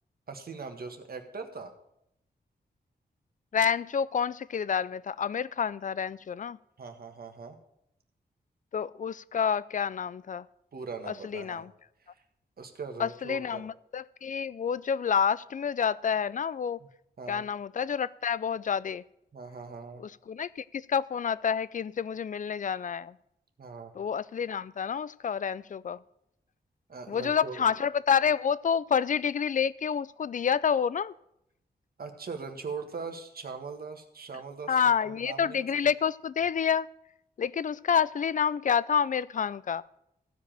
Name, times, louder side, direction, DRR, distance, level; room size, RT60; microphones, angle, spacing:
voice 1, 0.3-1.7 6.8-7.6 10.7-11.7 12.1-12.2 12.6-13.6 16.8-16.9 17.2-17.4 19.3-20.0 23.6-23.9 26.9-27.6 32.0-35.6, right 4 dB, 60° right, 5 dB, 1.6 m, -40 dB
voice 2, 3.5-6.6 8.7-10.4 11.1-11.7 13.0-16.8 17.3-19.0 20.0-23.2 24.0-26.0 27.1-31.1 34.7-36.9 37.4-39.8, left 7 dB, 50° left, 19 dB, 0.4 m, -28 dB
15.0 x 5.1 x 7.5 m, 0.77 s
wide cardioid pair, 100°, 17 cm